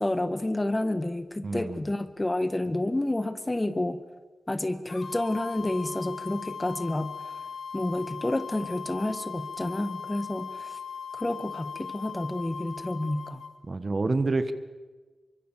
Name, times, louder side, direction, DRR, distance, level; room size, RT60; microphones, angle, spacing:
voice 1, 0.0-4.0 4.5-7.1 7.7-10.8 11.1-13.4, left 1 dB, 15° left, 10 dB, 1.7 m, -29 dB
voice 2, 1.4-1.8 13.6-14.5, right 3 dB, 35° right, 11 dB, 1.6 m, -27 dB
sound 1, 4.9-13.5, left 6 dB, 85° left, 2.9 m, -39 dB
27.5 x 24.5 x 7.6 m, 1.3 s
wide cardioid pair, 130°, 0 cm